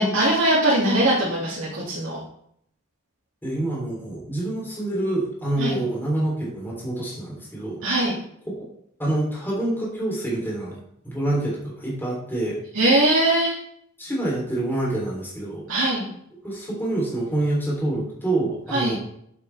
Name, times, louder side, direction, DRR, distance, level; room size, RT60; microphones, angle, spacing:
voice 1, 0.0-2.2 5.6-5.7 7.8-8.1 12.7-13.6 15.7-16.1 18.7-18.9, right 1 dB, 70° right, -7 dB, 2.5 m, -21 dB
voice 2, 3.4-7.8 8.4-8.5 9.0-10.8 11.0-12.6 14.0-15.6 16.4-19.0, right 1 dB, 10° left, -5 dB, 3.5 m, -26 dB
8.2 x 8.0 x 3.5 m, 0.71 s
head